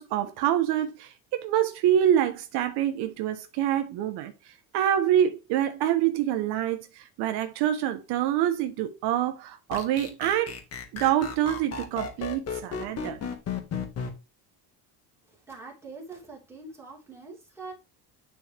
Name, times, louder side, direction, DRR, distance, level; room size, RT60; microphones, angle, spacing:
voice 1, 0.0-4.3 4.7-6.9 7.2-10.5 10.9-13.2, right 11 dB, 80° right, 1.1 m, -26 dB
sound 1, 9.7-14.1, left 6 dB, 40° left, 1.6 m, -33 dB
voice 2, 15.5-17.7, right 3 dB, 5° right, 2.9 m, -43 dB
9.8 x 4.4 x 3.4 m
cardioid pair, 150°, 39 cm